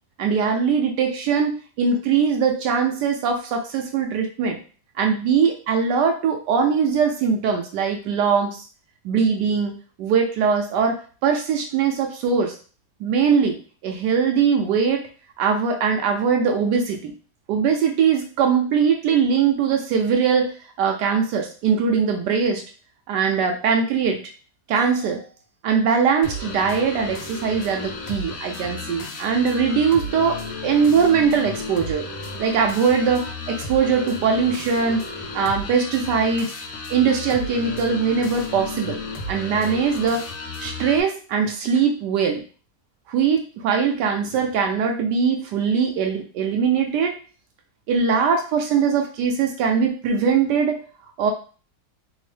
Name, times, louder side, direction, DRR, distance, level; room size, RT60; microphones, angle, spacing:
voice 1, 0.2-4.6 5.0-8.6 9.0-9.7 10.0-12.5 13.0-13.6 13.8-15.1 15.4-17.1 17.5-22.6 23.1-24.2 24.7-25.2 25.6-32.1 32.4-35.0 35.3-36.5 36.9-39.0 39.3-40.2 40.6-42.4 43.1-47.1 47.9-50.8 51.2-51.3, right 6 dB, 75° right, 3 dB, 1.1 m, -21 dB
sound 1, 26.2-41.0, left 2 dB, 85° left, 1.4 m, -33 dB
3.4 x 2.0 x 3.2 m, 0.38 s
omnidirectional pair, 2.0 m